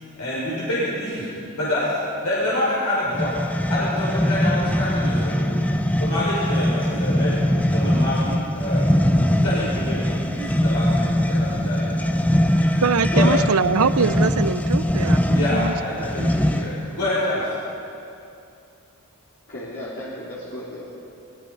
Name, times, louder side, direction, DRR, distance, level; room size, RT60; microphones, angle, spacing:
voice 1, 0.2-1.3 1.5-1.9 2.2-3.3 3.7-5.6 6.0-12.1 12.6-12.7 13.1-13.3 15.3-17.5, left 1 dB, 80° left, -8 dB, 6.2 m, -27 dB
sound 1, 3.1-16.8, equal, 5° left, 0.7 m, -21 dB
voice 2, 12.8-15.7 16.2-16.3, right 5 dB, 75° right, 14 dB, 0.6 m, -23 dB
voice 3, 19.5-21.0, equal, 55° left, -8 dB, 3.5 m, -35 dB
23.0 x 21.0 x 5.6 m, 2.7 s
head